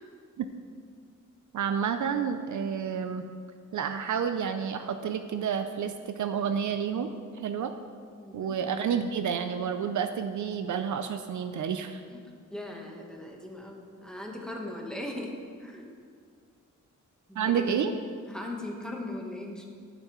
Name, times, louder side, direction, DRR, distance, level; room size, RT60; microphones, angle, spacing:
voice 1, 1.5-3.2 3.7-7.7 8.3-12.0 17.4-17.9, right 7 dB, 65° right, 8 dB, 0.5 m, -30 dB
voice 2, 8.2-8.6 12.1-12.2 12.5-15.3 15.6-15.9 17.3-17.9 18.3-19.7, left 1 dB, ahead, 0 dB, 1.3 m, -39 dB
12.0 x 6.6 x 3.1 m, 2.1 s
cardioid pair, 90°, 32 cm